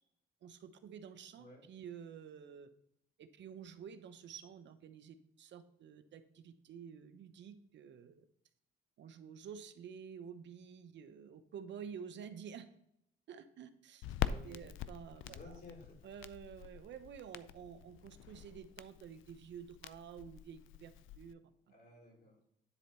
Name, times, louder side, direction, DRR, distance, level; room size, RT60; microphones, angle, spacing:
voice 1, 0.4-2.7 3.2-8.1 9.0-12.6 13.3-14.1 14.4-15.6 16.0-21.4, right 7 dB, 65° right, 10 dB, 0.9 m, -50 dB
Crackle, 14.0-21.3, left 10 dB, 85° left, 0.5 m, -44 dB
voice 2, 14.2-14.6 15.2-16.0 21.7-22.4, left 2 dB, 50° left, -1 dB, 3.9 m, -55 dB
10.0 x 4.2 x 5.5 m, 0.75 s
cardioid pair, 90°, 20 cm